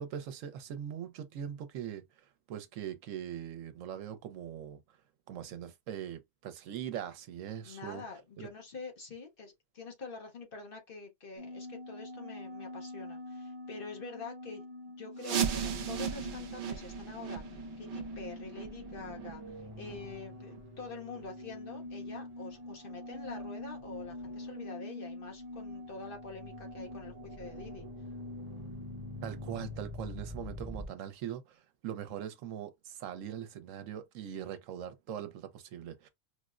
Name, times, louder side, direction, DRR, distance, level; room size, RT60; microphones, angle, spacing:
voice 1, 0.0-2.0 2.5-4.8 5.3-8.0 8.4-8.5 29.2-36.1, right 9 dB, 80° right, 1.0 m, -41 dB
voice 2, 7.7-14.6 15.0-17.4 17.8-27.9, left 4 dB, 50° left, 0.9 m, -46 dB
sound 1, 11.4-30.9, left 1 dB, 30° right, 0.8 m, -44 dB
sound 2, 15.2-20.8 21.1-21.2 21.8-21.9 22.5-22.6 23.1-23.2, right 7 dB, 60° right, 0.5 m, -37 dB
4.6 x 2.0 x 2.4 m
omnidirectional pair, 1.3 m